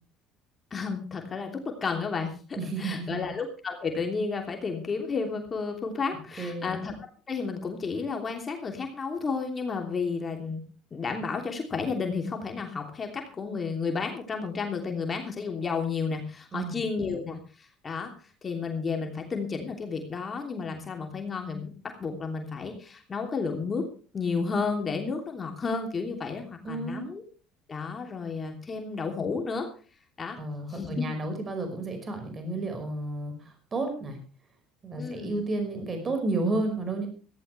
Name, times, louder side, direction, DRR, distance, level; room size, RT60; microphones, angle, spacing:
voice 1, 0.7-6.9 7.3-10.6 10.9-18.1 18.4-23.8 24.1-27.2 27.7-29.7 30.2-30.4 30.7-31.1 35.0-35.4, left 4 dB, 30° left, 3 dB, 3.0 m, -32 dB
voice 2, 2.6-3.2 6.4-6.7 16.5-16.8 17.1-17.2 26.6-27.0 30.4-34.2 34.8-37.1, right 2 dB, 35° right, 6 dB, 5.3 m, -31 dB
17.0 x 15.5 x 3.4 m, 0.37 s
hypercardioid pair, 65°, 0 cm